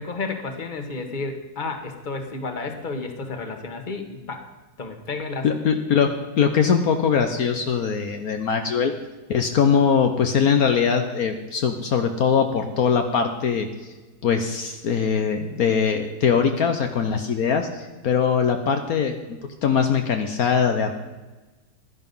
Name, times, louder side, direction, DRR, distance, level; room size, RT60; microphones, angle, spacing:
voice 1, 0.0-4.5 4.8-5.5, left 3 dB, 30° left, 6 dB, 1.6 m, -31 dB
voice 2, 5.4-8.9 9.3-13.9 14.2-20.9, left 6 dB, 65° left, 6 dB, 1.3 m, -22 dB
15.5 x 11.5 x 5.5 m, 1.2 s
omnidirectional pair, 1.7 m